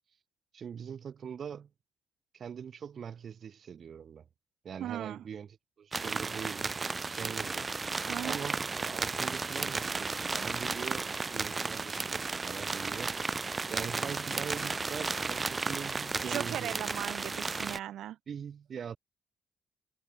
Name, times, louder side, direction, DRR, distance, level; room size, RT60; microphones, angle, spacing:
voice 1, 0.5-1.7 2.3-4.2 4.6-7.7 8.2-13.1 13.7-16.7 18.3-19.0, right 7 dB, 50° right, 3.3 m, -42 dB
voice 2, 4.8-5.2 8.1-8.4 16.2-18.2, right 12 dB, 85° right, 3.8 m, -38 dB
sound 1, 5.9-17.8, right 4 dB, 25° right, 1.0 m, -34 dB
cardioid pair, 135°, 0 cm